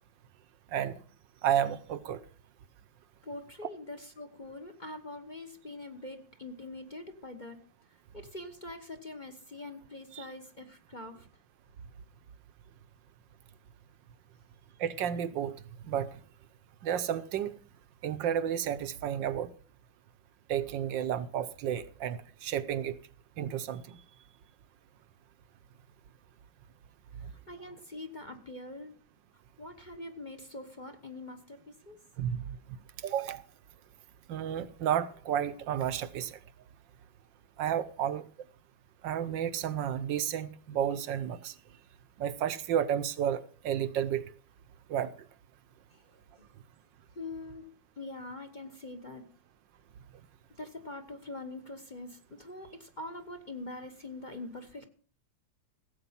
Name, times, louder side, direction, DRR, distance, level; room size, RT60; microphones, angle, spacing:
voice 1, 1.4-2.2 10.1-10.2 14.8-15.5 15.8-16.2 16.8-17.5 18.0-19.5 20.5-23.0 23.4-24.0 32.2-32.6 33.0-33.4 34.3-36.4 37.6-38.2 39.0-41.5 42.2-44.2 44.9-45.1, right 9 dB, 75° right, 1.4 m, -31 dB
voice 2, 3.2-7.6 8.1-11.3 27.2-28.9 29.6-32.0 45.9-46.1 46.4-46.5 47.1-47.7 48.0-49.2 50.6-54.8, left 2 dB, 30° left, 1.0 m, -44 dB
16.0 x 8.2 x 5.7 m
omnidirectional pair, 2.1 m